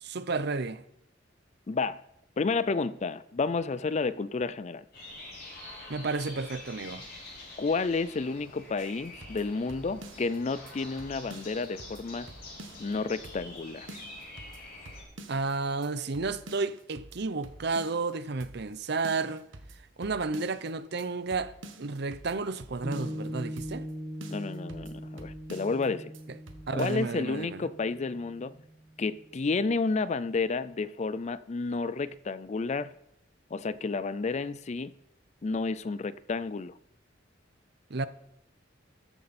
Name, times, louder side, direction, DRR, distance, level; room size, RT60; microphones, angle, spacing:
voice 1, 0.0-0.8 5.9-7.0 15.3-19.4 20.0-21.5 21.8-23.9 26.7-27.6 37.9-38.1, right 3 dB, 60° right, 0.7 m, -32 dB
voice 2, 1.7-2.0 2.4-4.8 7.6-12.3 12.8-14.0 24.3-26.1 26.7-28.6 29.0-32.9 33.5-34.9 35.4-36.7, left 4 dB, 35° left, 0.4 m, -31 dB
sound 1, 4.9-15.0, left 2 dB, 55° left, 6.3 m, -46 dB
sound 2, 8.8-10.4 10.7-10.8 11.0-13.0 13.2-13.6 13.9-15.5 15.8-15.9 16.1-18.1 18.4-18.8 19.0-20.7 21.0-21.1 21.3-23.3 23.6-23.9 24.2-25.9 26.1-26.2 26.5-27.1, right 1 dB, 80° right, 1.3 m, -48 dB
Piano, 22.8-29.5, equal, 20° right, 1.5 m, -41 dB
14.0 x 11.0 x 4.3 m
head